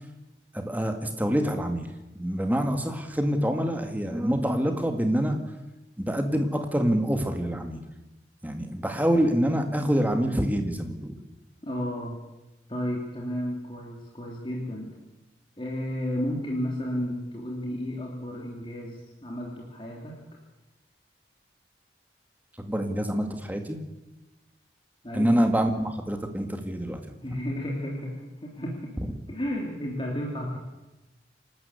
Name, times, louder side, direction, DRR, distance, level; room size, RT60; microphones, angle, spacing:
voice 1, 0.5-1.9 2.2-5.4 6.0-7.8 8.4-11.2 22.6-23.8 25.1-27.0 29.0-29.1, equal, 10° right, 5 dB, 1.9 m, -26 dB
voice 2, 11.6-12.2 12.7-14.9 15.6-20.2 25.0-25.3 27.2-28.9 29.3-30.6, equal, 30° left, -2 dB, 3.1 m, -32 dB
27.5 x 12.5 x 8.3 m, 1.0 s
head